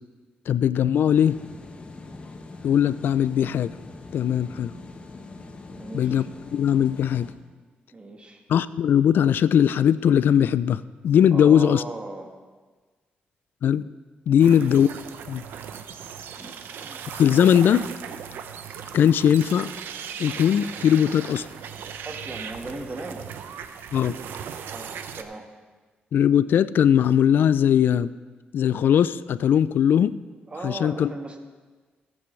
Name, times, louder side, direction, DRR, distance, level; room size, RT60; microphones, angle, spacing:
voice 1, 0.5-1.4 2.6-3.7 4.1-4.7 5.9-6.2 6.5-7.3 8.5-11.8 13.6-13.8 14.3-14.9 15.3-15.4 17.1-17.9 18.9-19.7 20.2-21.5 23.9-24.2 26.1-28.1 28.5-30.1 30.6-31.1, left 9 dB, 70° left, 16 dB, 0.4 m, -19 dB
sound 1, 1.1-7.3, left 3 dB, 30° left, 1.1 m, -42 dB
voice 2, 5.7-6.2 7.9-8.4 11.3-12.3 14.4-14.6 16.3-16.5 16.8-17.0 22.0-23.2 24.7-25.5 30.5-31.4, right 2 dB, 30° right, 3 dB, 1.5 m, -37 dB
sound 2, 14.4-25.2, right 8 dB, 90° right, 0.6 m, -38 dB
17.5 x 8.5 x 3.3 m, 1.4 s
cardioid pair, 85°, 4 cm